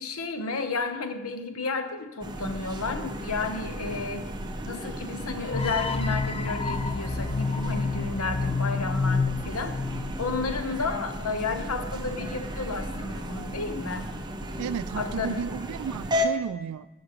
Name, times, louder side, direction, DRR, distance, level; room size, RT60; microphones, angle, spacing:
voice 1, 0.0-4.2 4.6-9.8 10.2-14.1 15.0-15.4, left 3 dB, 75° left, 8 dB, 1.0 m, -32 dB
sound 1, 2.2-16.3, equal, 20° right, 0.9 m, -34 dB
sound 2, 5.5-10.6, left 4 dB, 25° left, 0.5 m, -29 dB
voice 2, 14.6-16.9, right 7 dB, 80° right, 14 dB, 0.3 m, -33 dB
12.0 x 6.5 x 6.6 m, 1.1 s
head